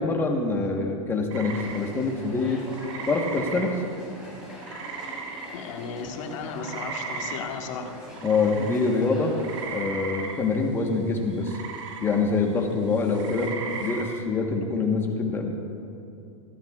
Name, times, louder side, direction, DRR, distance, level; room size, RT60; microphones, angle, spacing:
voice 1, 0.0-2.6 3.1-3.8 8.2-9.3 9.7-11.6 12.0-13.5 13.8-15.5, left 4 dB, 15° left, 2 dB, 1.1 m, -25 dB
sound 1, 1.3-6.0 6.3-14.2, right 5 dB, 60° right, 1.3 m, -38 dB
sound 2, 1.4-9.6, left 1 dB, 5° right, 3.0 m, -43 dB
voice 2, 5.5-7.9, left 5 dB, 60° left, 3 dB, 1.5 m, -35 dB
18.0 x 15.0 x 2.4 m, 2.6 s
supercardioid pair, 150°, 18 cm